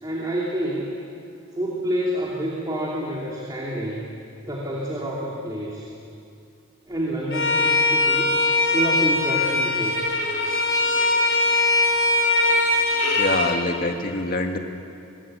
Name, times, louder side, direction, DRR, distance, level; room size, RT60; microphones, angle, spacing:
voice 1, 0.0-1.0 1.5-5.9 6.9-8.4 8.7-10.1, right 1 dB, 20° right, -4 dB, 2.9 m, -28 dB
Bowed string instrument, 7.3-13.6, left 2 dB, 60° left, 3.7 m, -21 dB
voice 2, 13.1-14.6, left 2 dB, 40° left, 3 dB, 2.1 m, -25 dB
23.5 x 22.5 x 9.0 m, 2.6 s
head